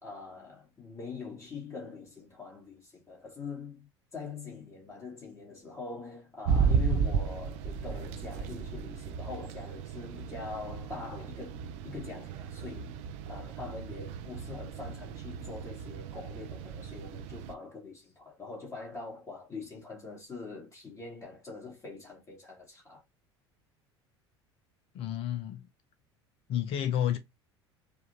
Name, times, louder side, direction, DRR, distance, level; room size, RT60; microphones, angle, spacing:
voice 1, 0.0-13.0 13.3-23.0, left 4 dB, 20° left, 2.0 m, -43 dB
sound 1, 6.5-17.5, right 6 dB, 50° right, 0.5 m, -34 dB
voice 2, 24.9-25.6 26.5-27.2, left 10 dB, 40° left, 0.5 m, -30 dB
4.8 x 2.5 x 2.9 m
figure-of-eight pair, 70°, 15 cm